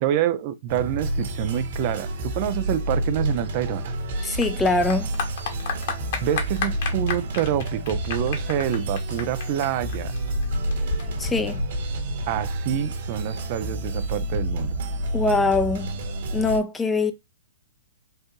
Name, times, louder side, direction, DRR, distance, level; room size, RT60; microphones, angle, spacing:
voice 1, 0.0-3.9 6.2-10.1 12.3-14.8, right 11 dB, 45° right, 0.5 m, -27 dB
sound 1, 0.7-16.6, right 1 dB, 60° right, 1.7 m, -29 dB
Clapping / Applause, 3.3-12.3, left 4 dB, 55° left, 1.5 m, -32 dB
voice 2, 4.2-5.1 11.2-11.6 15.1-15.9 16.3-17.1, left 3 dB, 10° left, 0.6 m, -23 dB
4.5 x 2.5 x 4.7 m
hypercardioid pair, 130°, 0 cm